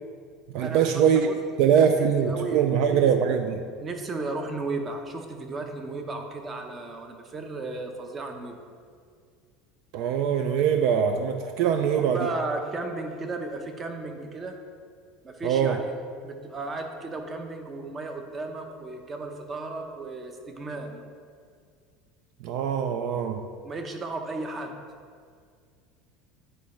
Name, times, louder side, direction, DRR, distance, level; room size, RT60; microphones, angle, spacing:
voice 1, 0.5-1.3 1.6-3.6 9.9-12.3 15.4-15.8 22.4-23.4, right 8 dB, 60° right, 7 dB, 0.3 m, -22 dB
voice 2, 1.8-3.0 3.8-8.6 11.7-14.6 15.2-15.9 16.2-21.0 23.6-24.8, right 3 dB, 25° right, 4 dB, 0.7 m, -35 dB
9.2 x 4.3 x 3.1 m, 2.1 s
supercardioid pair, 140°, 0 cm